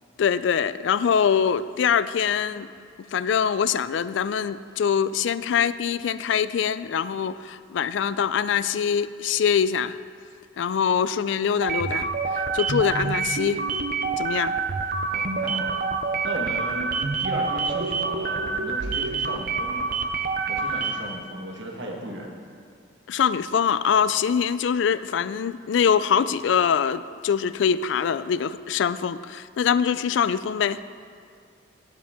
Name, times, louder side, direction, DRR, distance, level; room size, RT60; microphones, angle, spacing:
voice 1, 0.2-2.7 3.0-10.0 10.6-12.1 12.3-13.6 14.2-14.5 23.1-30.9, left 7 dB, 70° left, 15 dB, 0.3 m, -23 dB
sound 1, 11.6-21.2, right 4 dB, 45° right, 0.5 m, -27 dB
voice 2, 15.1-15.8 16.2-19.9 20.5-22.3, right 1 dB, 65° right, -1 dB, 1.5 m, -35 dB
17.0 x 7.5 x 3.6 m, 2.2 s
head